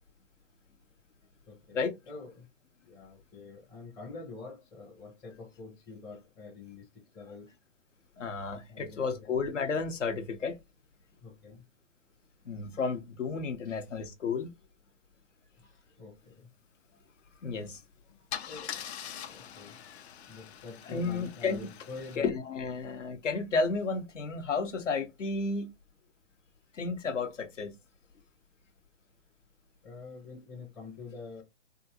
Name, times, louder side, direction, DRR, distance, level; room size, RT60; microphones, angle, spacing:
voice 1, 1.5-1.8 2.1-2.5 2.8-7.5 8.7-9.3 11.2-11.6 13.6-13.8 15.6-16.5 18.1-19.8 20.3-22.3 29.8-31.4, left 4 dB, 10° left, 0.6 m, -47 dB
voice 2, 8.2-10.6 12.4-14.5 17.4-17.8 20.8-21.7 22.2-25.7 26.7-27.7, left 4 dB, 80° left, 1.0 m, -32 dB
Car / Engine starting / Idling, 17.6-17.8 18.3-22.2, left 9 dB, 60° left, 0.6 m, -43 dB
3.6 x 2.5 x 2.9 m
hypercardioid pair, 135°, 37 cm